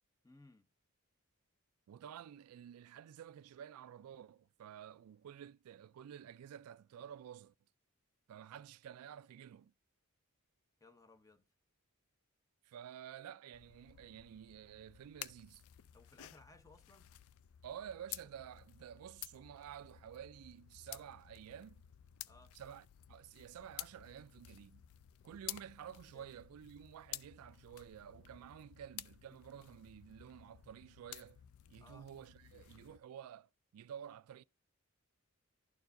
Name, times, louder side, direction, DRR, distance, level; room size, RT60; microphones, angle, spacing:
voice 1, 0.2-0.7 10.8-11.5 15.9-17.1 22.3-22.6 26.1-26.3 31.8-32.1, left 2 dB, 15° left, 0.6 m, -61 dB
voice 2, 1.9-7.5 8.3-9.7 12.6-15.6 17.6-21.8 22.5-24.8 25.2-31.4 31.7-34.4, right 9 dB, 80° right, 0.3 m, -51 dB
sound 1, 13.5-33.0, left 13 dB, 70° left, 0.3 m, -53 dB
12.0 x 4.5 x 2.6 m
head